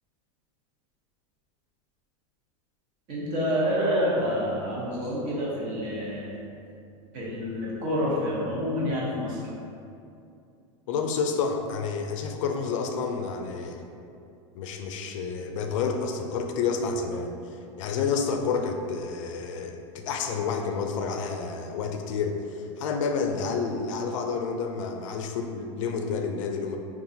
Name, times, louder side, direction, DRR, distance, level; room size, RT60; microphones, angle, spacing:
voice 1, 3.1-6.4 7.1-9.4, equal, 50° right, -6 dB, 1.0 m, -28 dB
voice 2, 10.9-13.8 14.5-26.8, left 5 dB, 75° left, 4 dB, 0.4 m, -29 dB
3.7 x 2.4 x 2.7 m, 2.6 s
supercardioid pair, 140°, 17 cm